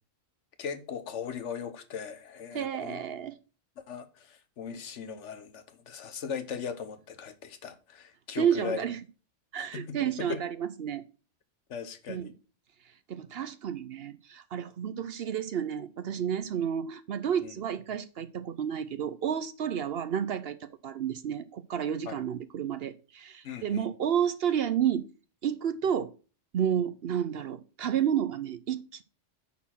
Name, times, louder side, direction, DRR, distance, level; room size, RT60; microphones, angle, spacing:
voice 1, 0.6-3.0 3.9-8.8 9.7-10.4 11.7-12.3 17.4-17.5 22.1-22.2 23.4-23.9, left 6 dB, 70° left, 1.2 m, -38 dB
voice 2, 2.5-3.4 8.3-9.0 9.5-11.0 12.1-12.3 13.1-25.1 25.4-26.1 26.5-29.0, right 9 dB, 60° right, 0.8 m, -31 dB
9.6 x 4.3 x 5.7 m
omnidirectional pair, 1.3 m